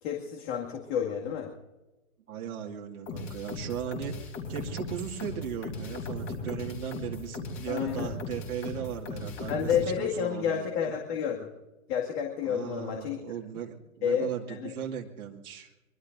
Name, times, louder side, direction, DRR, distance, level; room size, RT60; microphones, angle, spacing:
voice 1, 0.0-1.5 7.7-8.1 9.5-11.5 11.9-13.2 14.0-14.7, left 8 dB, 45° left, 0 dB, 2.2 m, -30 dB
voice 2, 2.3-11.0 12.4-15.7, right 9 dB, 85° right, -1 dB, 2.4 m, -37 dB
sound 1, 3.1-9.9, left 3 dB, 30° left, 3.6 m, -38 dB
24.5 x 22.5 x 2.6 m, 1.1 s
hypercardioid pair, 145°, 43 cm